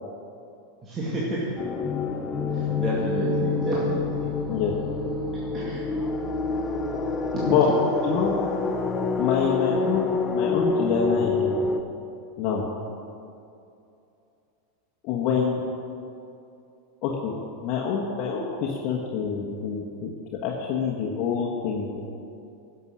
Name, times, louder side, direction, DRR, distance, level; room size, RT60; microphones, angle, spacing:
voice 1, 0.8-1.5 2.5-4.3 5.5-5.9 7.4-7.5, right 1 dB, 30° right, -6 dB, 2.2 m, -30 dB
sound 1, 1.6-11.8, left 4 dB, 25° left, 0.8 m, -27 dB
voice 2, 8.0-8.4 9.2-11.6 12.4-12.6 15.0-15.6 17.0-17.3 17.6-20.1 20.4-22.0, left 6 dB, 50° left, -3 dB, 1.4 m, -26 dB
11.0 x 7.0 x 6.4 m, 2.6 s
hypercardioid pair, 100°, 0 cm